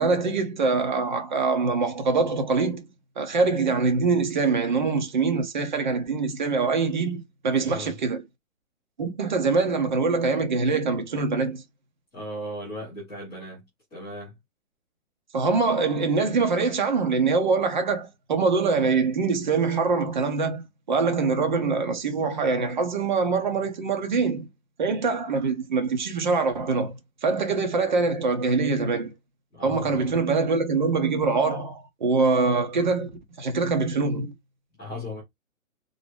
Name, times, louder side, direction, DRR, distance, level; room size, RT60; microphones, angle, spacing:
voice 1, 0.0-2.9 3.2-8.2 9.0-11.6 15.3-24.5 24.8-29.1 29.6-33.1 33.4-34.3, right 4 dB, 35° right, 0.9 m, -24 dB
voice 2, 7.5-7.9 12.1-13.6 13.9-14.3 29.5-30.1 34.8-35.2, equal, 5° left, 0.7 m, -37 dB
3.8 x 2.0 x 3.5 m
hypercardioid pair, 175°, 40 cm